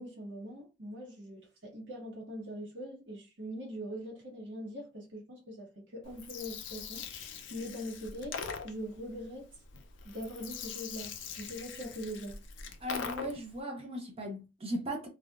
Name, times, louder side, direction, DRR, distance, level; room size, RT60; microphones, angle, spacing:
voice 1, 0.0-9.6 10.0-12.4, equal, 85° right, 1.4 m, -42 dB
Gurgling, 6.0-13.6, left 6 dB, 80° left, 0.5 m, -43 dB
voice 2, 12.8-15.1, equal, 30° right, 0.6 m, -37 dB
3.4 x 2.2 x 2.4 m
head